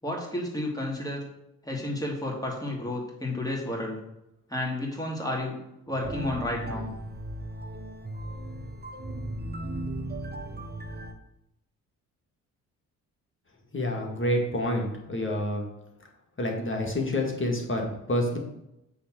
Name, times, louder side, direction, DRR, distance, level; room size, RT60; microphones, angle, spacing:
voice 1, 0.0-1.2 1.6-4.0 4.5-5.6 5.9-6.9, left 1 dB, 10° left, -2 dB, 3.0 m, -31 dB
sound 1, 6.0-11.1, right 1 dB, 20° right, 1.2 m, -36 dB
voice 2, 13.7-15.6 16.4-18.4, left 1 dB, 25° left, 0 dB, 2.0 m, -28 dB
8.3 x 3.6 x 6.3 m, 0.86 s
figure-of-eight pair, 40°, 45 cm